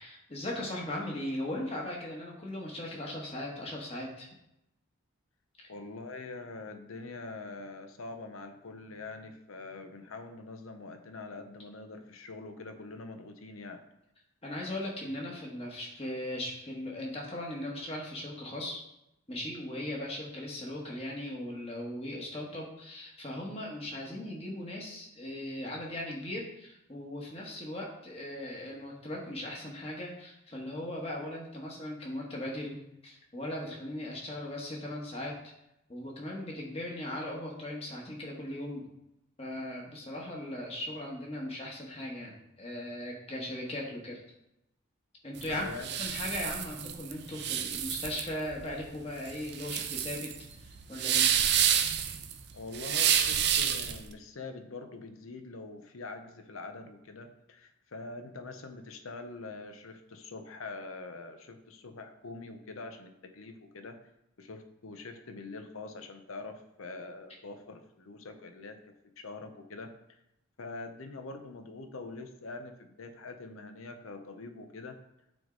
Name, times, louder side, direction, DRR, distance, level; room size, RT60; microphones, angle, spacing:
voice 1, 0.0-4.3 5.6-5.7 14.4-18.8 19.3-32.8 33.0-35.4 35.9-38.8 39.4-42.3 42.6-44.2 45.2-45.7 46.0-50.3 50.6-51.3, left 1 dB, 30° left, -2 dB, 1.4 m, -38 dB
voice 2, 5.7-13.8 45.5-45.9 52.5-64.0 64.4-68.8 69.2-70.2 70.6-75.0, left 3 dB, 85° left, 7 dB, 0.8 m, -44 dB
sound 1, 45.4-54.0, right 9 dB, 50° right, 0.5 m, -29 dB
9.0 x 3.6 x 3.9 m, 0.84 s
head